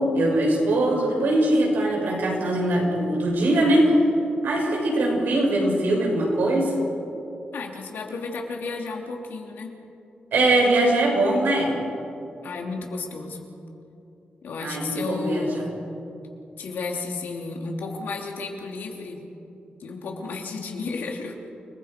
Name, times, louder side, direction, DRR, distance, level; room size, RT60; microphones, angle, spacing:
voice 1, 0.0-3.9 4.4-6.7 10.3-11.7 14.6-15.5, right 1 dB, 85° right, -2 dB, 7.2 m, -21 dB
voice 2, 7.5-9.7 12.4-13.5 14.4-15.8 16.6-19.2 19.8-21.4, left 3 dB, 85° left, 1 dB, 3.1 m, -33 dB
30.0 x 21.0 x 5.3 m, 2.8 s
wide cardioid pair, 160°, 3 cm